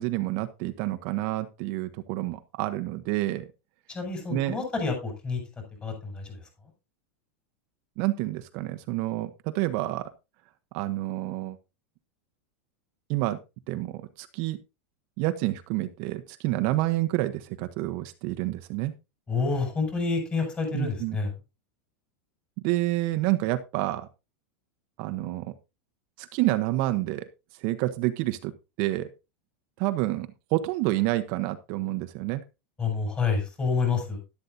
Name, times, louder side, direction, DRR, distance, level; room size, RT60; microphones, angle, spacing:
voice 1, 0.0-3.5 4.3-4.6 8.0-10.1 10.7-11.6 13.1-13.4 13.7-14.6 15.2-18.9 20.7-21.2 22.6-24.1 25.0-25.5 26.2-27.3 27.6-28.5 28.8-29.1 29.8-32.4, right 17 dB, 50° right, 9 dB, 1.0 m, -28 dB
voice 2, 3.9-5.4 5.8-6.4 19.3-21.3 32.8-34.2, left 4 dB, 15° left, 4 dB, 6.6 m, -28 dB
12.0 x 12.0 x 2.7 m, 0.26 s
supercardioid pair, 150°, 7 cm